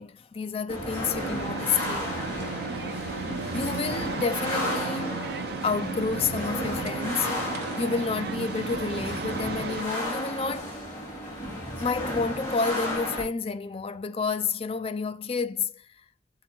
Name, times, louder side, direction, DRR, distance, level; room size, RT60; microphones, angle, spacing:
voice 1, 0.0-2.1 3.5-5.3 5.6-7.3 7.8-10.8 11.8-15.9, left 5 dB, 30° left, 0.4 m, -30 dB
sound 1, 0.7-13.2, left 1 dB, 10° left, 3.7 m, -33 dB
sound 2, 1.2-9.8, right 4 dB, 60° right, 0.6 m, -35 dB
7.2 x 3.8 x 4.4 m
head